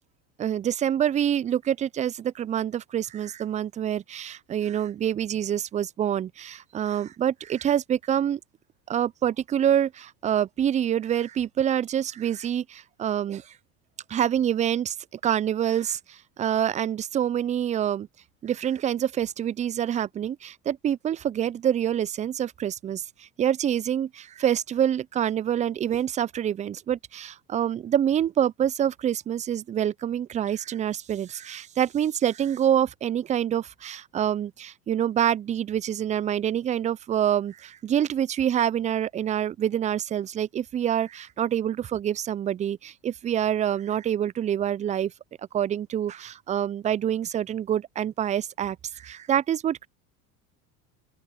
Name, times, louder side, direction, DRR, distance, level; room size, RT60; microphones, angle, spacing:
voice 1, 0.4-8.4 8.9-13.5 14.1-15.0 15.2-18.1 18.4-45.1 45.5-49.9, right 10 dB, 15° right, 0.4 m, -26 dB
open air
hypercardioid pair, 85°, 45 cm